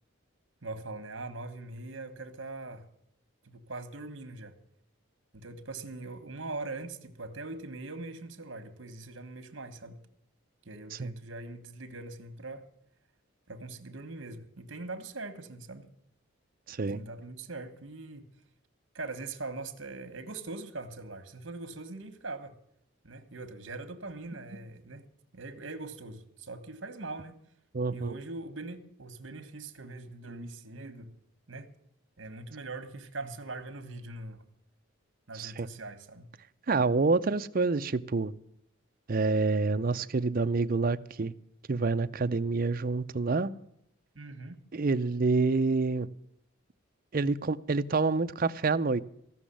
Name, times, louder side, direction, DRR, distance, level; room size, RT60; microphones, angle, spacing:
voice 1, 0.6-2.8 3.4-4.6 5.3-10.0 10.6-12.7 13.5-15.9 16.9-18.3 18.9-22.6 23.0-25.1 25.3-27.4 27.9-31.1 31.5-31.7 32.2-34.4 35.3-36.3 36.7-37.0 44.1-44.6, right 2 dB, 65° right, 1.4 m, -42 dB
voice 2, 16.7-17.0 27.7-28.2 35.3-35.7 36.7-38.3 39.1-41.3 41.7-43.5 44.7-46.1 47.1-49.0, right 3 dB, 45° right, 0.5 m, -27 dB
15.5 x 6.2 x 10.0 m
head